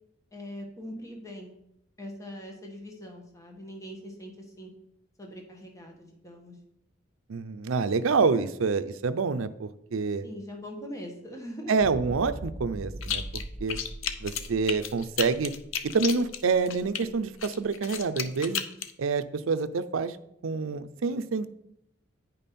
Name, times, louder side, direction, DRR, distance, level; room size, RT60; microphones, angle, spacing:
voice 1, 0.3-1.5 2.0-4.7 5.2-6.5 10.2-11.7, equal, 15° left, 1 dB, 1.3 m, -42 dB
voice 2, 7.3-10.3 11.7-13.2 13.6-13.8 14.2-15.5 15.8-18.6 19.0-20.2 20.4-21.5, right 4 dB, 80° right, 13 dB, 0.5 m, -27 dB
sound 1, 11.8-15.8 16.3-16.5, right 1 dB, 35° left, 1.7 m, -40 dB
sound 2, 13.0-13.4 13.7-17.0 17.4-18.9, left 8 dB, 75° left, 0.6 m, -33 dB
9.6 x 5.4 x 4.2 m, 0.77 s
head